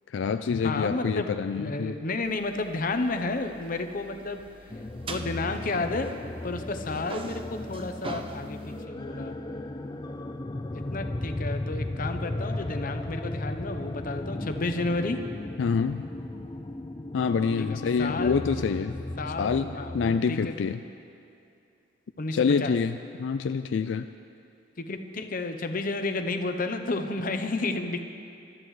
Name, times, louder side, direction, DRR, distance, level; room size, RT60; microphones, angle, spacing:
voice 1, 0.1-1.9 15.6-16.0 17.1-19.0 19.4-20.8 22.3-24.1, left 5 dB, 80° left, 9 dB, 0.4 m, -26 dB
voice 2, 0.6-1.3 1.6-4.4 5.1-6.1 6.4-9.3 10.7-15.2 17.7-18.4 18.8-18.9 19.2-20.5 22.2-22.7 24.8-28.0, left 2 dB, 50° left, 7 dB, 0.8 m, -31 dB
sound 1, 2.2-6.5 6.7-8.8, right 3 dB, 30° right, 0.6 m, -43 dB
sound 2, 4.7-20.2, left 1 dB, 20° left, 0.4 m, -36 dB
23.5 x 12.5 x 3.2 m, 2.5 s
head